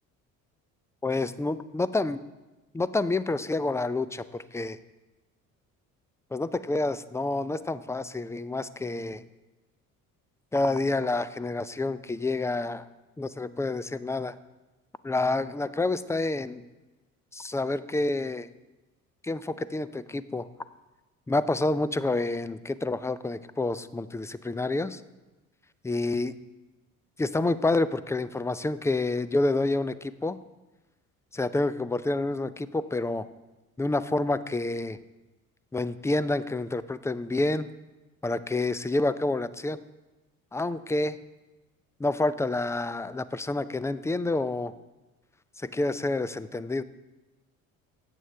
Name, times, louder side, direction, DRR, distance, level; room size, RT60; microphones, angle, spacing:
voice 1, 1.0-2.2 2.7-4.8 6.3-9.2 10.5-12.9 13.2-14.4 15.0-16.6 17.3-18.5 19.2-20.5 21.3-25.0 25.8-26.3 27.2-30.4 31.3-33.3 33.8-35.0 35.7-37.7 38.2-39.8 40.5-41.2 42.0-44.7 45.6-46.8, left 2 dB, 5° left, 16 dB, 0.4 m, -28 dB
13.5 x 9.2 x 3.4 m, 1.1 s
hypercardioid pair, 60°, 41 cm